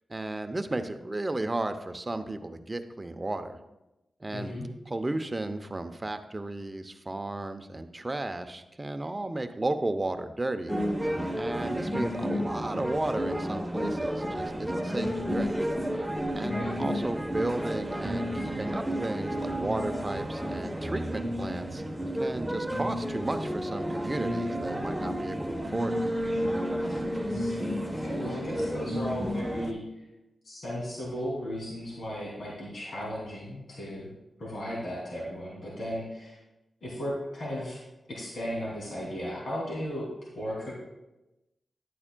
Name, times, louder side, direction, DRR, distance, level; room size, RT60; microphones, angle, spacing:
voice 1, 0.1-3.6 4.2-4.5 4.9-10.7 11.3-15.5 15.9-16.1 16.3-21.8 22.2-26.0, right 2 dB, 25° right, 8 dB, 0.7 m, -34 dB
voice 2, 4.3-4.7 16.5-16.8 26.9-27.0 27.3-29.8 30.4-34.1 34.4-36.4 36.8-37.8 38.1-40.1 40.3-40.7, equal, 65° left, -6 dB, 2.7 m, -35 dB
sound 1, 10.7-29.7, equal, 5° right, 1.0 m, -31 dB
11.0 x 8.5 x 2.2 m, 0.98 s
cardioid pair, 60°, 0 cm